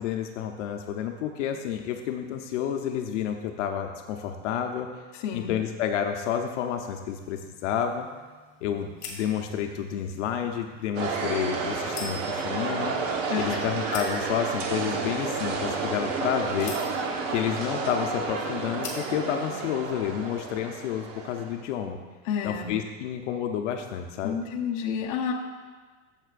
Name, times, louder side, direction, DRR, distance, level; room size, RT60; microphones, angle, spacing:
voice 1, 0.0-4.9 5.3-8.1 8.6-16.7 17.3-22.0 22.4-24.4, left 9 dB, 70° left, 4 dB, 0.8 m, -30 dB
voice 2, 5.1-5.5 13.3-13.6 22.2-22.8 24.2-25.3, left 7 dB, 40° left, 0 dB, 0.9 m, -30 dB
sound 1, 7.0-19.7, left 3 dB, 20° left, 1.6 m, -46 dB
sound 2, 10.9-21.6, right 4 dB, 75° right, 1.3 m, -31 dB
12.5 x 7.5 x 2.5 m, 1.4 s
supercardioid pair, 170°, 38 cm